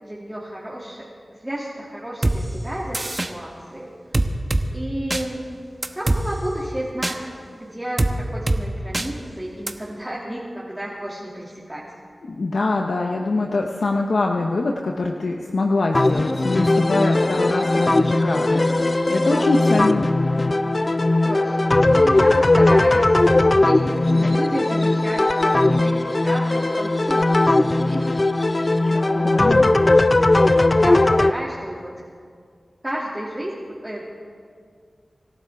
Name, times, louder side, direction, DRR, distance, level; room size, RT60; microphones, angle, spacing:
voice 1, 0.0-1.0 1.3-4.3 4.7-5.6 5.9-7.3 7.5-11.8 19.3-19.7 21.2-28.6 28.9-29.7 30.4-31.9 32.8-34.0, right 1 dB, 15° right, -6 dB, 2.5 m, -32 dB
sound 1, 2.2-2.4 2.9-3.3 4.1-4.6 5.1-5.2 5.8-6.2 7.0-7.2 8.0-8.1 8.5-8.6 8.9-9.1 9.7-9.8, right 2 dB, 35° right, 1.0 m, -21 dB
voice 2, 12.3-18.6 19.1-20.1 29.2-29.7, left 3 dB, 80° left, 2 dB, 0.8 m, -23 dB
sound 2, 15.9-31.3, left 2 dB, 40° left, 0.5 m, -18 dB
26.0 x 12.0 x 3.6 m, 2.1 s
cardioid pair, 45°, 0 cm